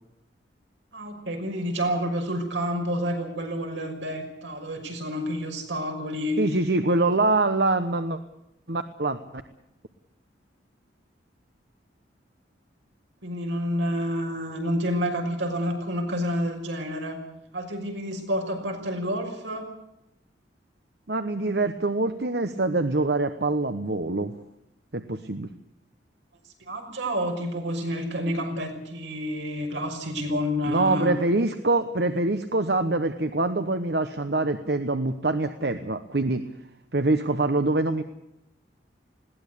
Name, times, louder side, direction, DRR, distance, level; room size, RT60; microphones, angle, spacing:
voice 1, 0.9-6.4 13.2-17.2 17.5-19.7 26.7-31.1, equal, 85° right, 3 dB, 6.0 m, -29 dB
voice 2, 6.4-8.2 8.7-9.4 21.1-24.3 24.9-25.5 30.7-36.4 36.9-38.0, right 2 dB, 60° right, 9 dB, 1.1 m, -24 dB
21.0 x 17.5 x 8.3 m, 0.84 s
head